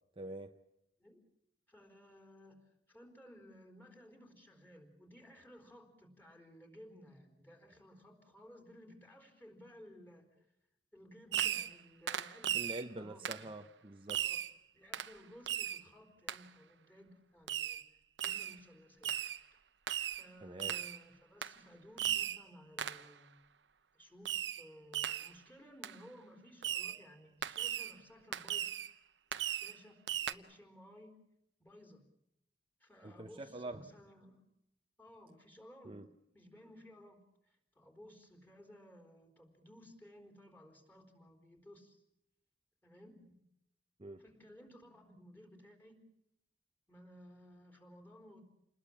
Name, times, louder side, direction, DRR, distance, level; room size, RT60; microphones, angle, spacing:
voice 1, 0.2-0.6 12.5-14.2 20.4-20.8 33.0-33.8 35.8-36.1 44.0-44.2, right 2 dB, 30° right, 6 dB, 0.8 m, -45 dB
voice 2, 1.7-10.5 10.9-12.6 13.0-13.5 14.1-14.4 14.7-17.8 18.2-19.1 20.1-23.4 23.9-28.7 29.4-30.0 30.3-31.1 31.6-32.0 32.8-34.4 35.0-36.0 36.3-42.0 42.8-43.4 44.2-46.0 46.9-48.4, equal, 10° left, 5 dB, 4.2 m, -57 dB
Fireworks, 11.3-11.8 12.1-12.8 13.2-13.5 14.1-14.5 14.9-15.1 15.5-15.8 16.3-16.4 17.5-17.8 18.2-18.6 19.0-19.4 19.9-20.2 20.6-21.0 21.4-21.6 22.0-22.4 22.8-23.1 24.2-24.6 24.9-25.3 25.8-25.9 26.6-27.0 27.4-27.9 28.3-28.9 29.3-29.8 30.1-30.3, right 10 dB, 80° right, 0.9 m, -37 dB
28.5 x 20.5 x 7.4 m, 0.80 s
head